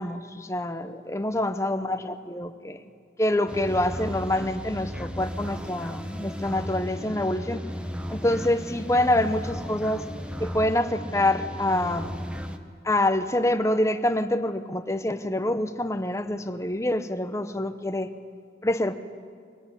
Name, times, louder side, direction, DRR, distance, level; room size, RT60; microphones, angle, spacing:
voice 1, 0.0-2.8 3.2-7.6 8.1-10.0 10.4-12.2 12.8-18.1 18.6-18.9, left 1 dB, 15° left, 9 dB, 0.9 m, -26 dB
sound 1, 3.5-12.6, equal, 5° right, 1.1 m, -35 dB
24.0 x 18.5 x 9.9 m, 2.2 s
head